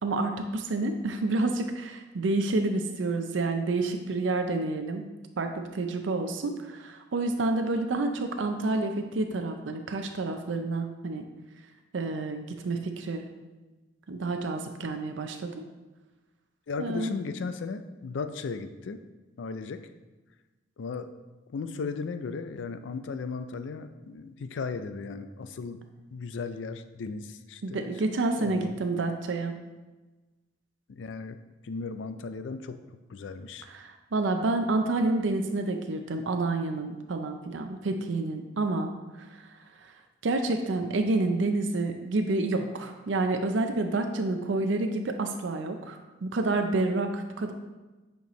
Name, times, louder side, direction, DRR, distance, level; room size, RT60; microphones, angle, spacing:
voice 1, 0.0-5.1 5.4-11.2 11.9-13.2 14.1-15.6 16.8-17.2 27.6-29.5 33.7-38.9 39.2-39.3 39.8-39.9 40.2-47.5, right 2 dB, 80° right, 5 dB, 0.5 m, -29 dB
voice 2, 16.7-19.0 19.4-19.8 20.8-21.1 21.5-25.8 26.1-27.9 28.4-28.8 30.9-31.4 31.6-32.8 33.1-33.7, left 4 dB, 75° left, 9 dB, 0.4 m, -36 dB
8.0 x 4.4 x 3.1 m, 1.2 s
head